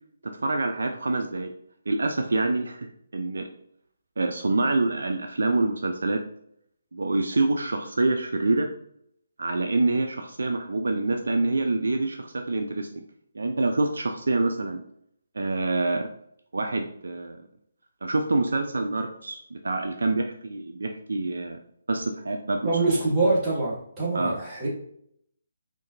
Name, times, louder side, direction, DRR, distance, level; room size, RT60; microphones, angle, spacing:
voice 1, 0.2-1.5 1.9-2.9 3.1-3.5 4.2-6.2 6.9-8.7 9.4-12.9 13.3-14.8 15.4-16.1 16.5-17.4 18.0-21.6 21.9-22.7 24.1-24.4, right 2 dB, 60° right, 4 dB, 0.3 m, -26 dB
voice 2, 22.6-24.7, right 2 dB, 10° right, -9 dB, 1.2 m, -24 dB
3.6 x 2.5 x 2.6 m, 0.70 s
figure-of-eight pair, 145°, 0 cm